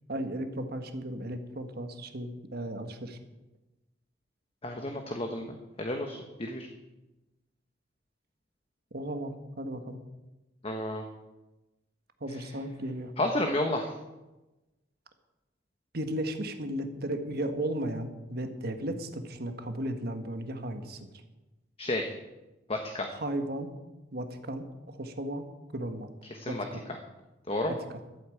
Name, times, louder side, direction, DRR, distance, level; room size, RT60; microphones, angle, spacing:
voice 1, 0.1-3.2 8.9-10.0 12.2-13.1 15.9-21.1 23.1-23.7 24.1-25.5 25.7-26.1 26.5-26.8 27.7-28.0, right 1 dB, 55° right, 7 dB, 1.5 m, -35 dB
voice 2, 4.6-6.7 10.6-11.0 13.2-13.9 21.8-22.1 22.7-23.1 26.3-27.0 27.5-27.8, left 1 dB, 30° left, 4 dB, 1.1 m, -32 dB
13.0 x 8.4 x 8.5 m, 1.1 s
head